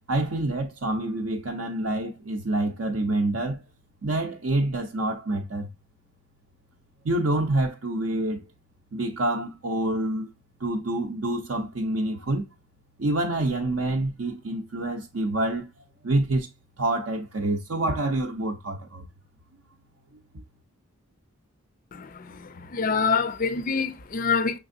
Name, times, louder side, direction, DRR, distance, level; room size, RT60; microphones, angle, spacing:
voice 1, 0.1-3.6 4.0-5.7 7.0-8.4 8.9-10.3 10.6-12.4 13.0-15.7 16.0-16.5 16.8-19.0 20.3-20.4, right 2 dB, 60° right, 0.6 m, -27 dB
voice 2, 21.9-24.6, left 5 dB, 35° left, 0.4 m, -26 dB
6.0 x 3.4 x 2.6 m
head